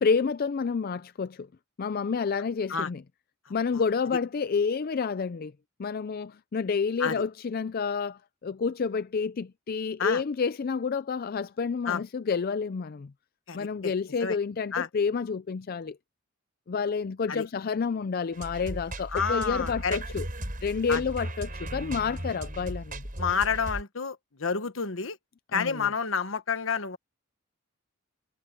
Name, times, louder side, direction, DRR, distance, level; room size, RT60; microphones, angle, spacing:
voice 1, 0.0-1.5 1.8-3.0 3.5-5.5 5.8-13.1 13.5-16.0 16.7-20.3 20.6-23.0 25.5-25.9, left 5 dB, 45° left, 0.4 m, -29 dB
voice 2, 13.5-13.9 14.2-14.4 14.7-14.9 17.3-17.5 19.1-20.0 20.9-21.0 23.2-25.2 25.5-27.0, left 6 dB, 70° left, 1.3 m, -29 dB
sound 1, 18.3-23.8, right 1 dB, 40° right, 6.4 m, -36 dB
head